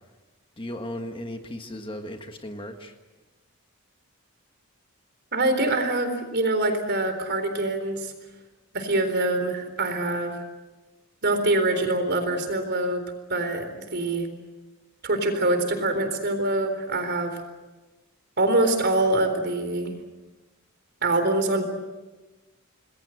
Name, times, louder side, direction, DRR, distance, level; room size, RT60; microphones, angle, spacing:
voice 1, 0.6-2.9, left 1 dB, 25° left, 5 dB, 1.5 m, -36 dB
voice 2, 5.3-8.1 8.7-10.4 11.2-13.0 13.3-14.3 15.0-17.4 18.4-19.9 21.0-21.6, right 2 dB, 50° right, 8 dB, 3.9 m, -24 dB
27.0 x 20.5 x 7.9 m, 1.2 s
head